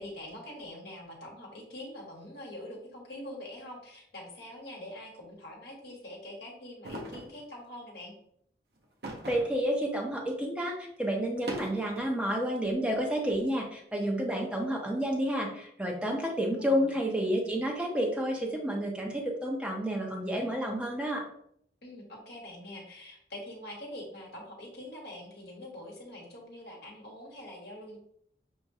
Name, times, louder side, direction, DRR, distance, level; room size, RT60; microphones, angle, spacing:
voice 1, 0.0-8.1 16.6-16.9 21.8-28.0, left 1 dB, 65° left, -2 dB, 1.2 m, -44 dB
sound 1, 6.8-7.4 9.0-9.6 10.1-10.2 11.2-12.0, right 1 dB, 65° right, 0.7 m, -40 dB
voice 2, 9.3-21.2, equal, 5° right, -1 dB, 0.7 m, -30 dB
6.2 x 2.1 x 2.6 m, 0.69 s
head